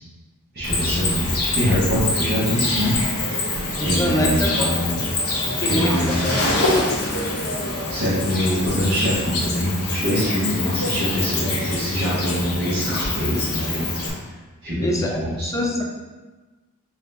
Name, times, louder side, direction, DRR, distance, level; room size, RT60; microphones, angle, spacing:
voice 1, 0.5-3.5 3.8-5.0 5.6-6.5 7.0-7.5 7.9-13.9 14.6-15.5, equal, 45° right, -9 dB, 1.2 m, -24 dB
Cricket, 0.6-14.1, left 2 dB, 80° left, 0.8 m, -25 dB
voice 2, 3.8-4.7 5.5-6.5 14.8-15.8, left 1 dB, 15° left, 0 dB, 0.4 m, -25 dB
4.0 x 2.7 x 3.4 m, 1.2 s
head